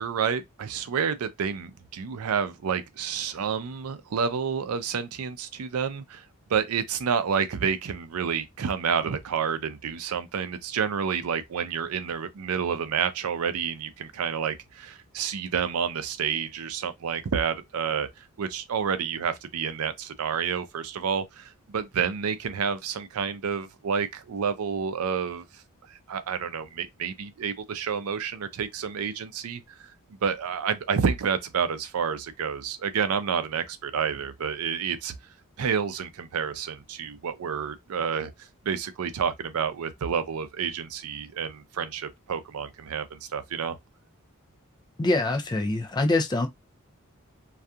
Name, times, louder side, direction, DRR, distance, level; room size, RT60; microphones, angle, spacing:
voice 1, 0.0-6.2 6.5-25.4 25.9-29.6 30.2-35.1 35.6-38.3 38.7-43.8, right 6 dB, 90° right, 0.4 m, -29 dB
voice 2, 45.0-46.5, left 2 dB, 20° left, 0.3 m, -24 dB
2.7 x 2.3 x 2.3 m
head